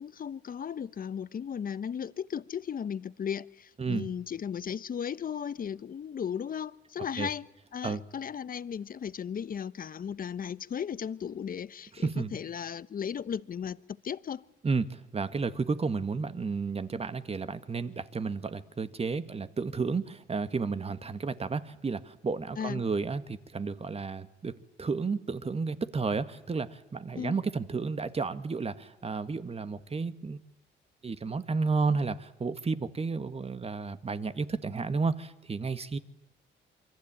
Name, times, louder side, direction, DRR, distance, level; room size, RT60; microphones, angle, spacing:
voice 1, 0.0-7.5 7.7-14.4 22.6-22.8 27.1-27.4, left 8 dB, 45° left, 1.0 m, -36 dB
voice 2, 3.8-4.1 7.2-7.3 7.8-8.0 11.9-12.3 14.6-30.4 31.0-36.0, right 4 dB, 30° right, 1.9 m, -32 dB
27.5 x 24.0 x 9.0 m
cardioid pair, 90°, 20 cm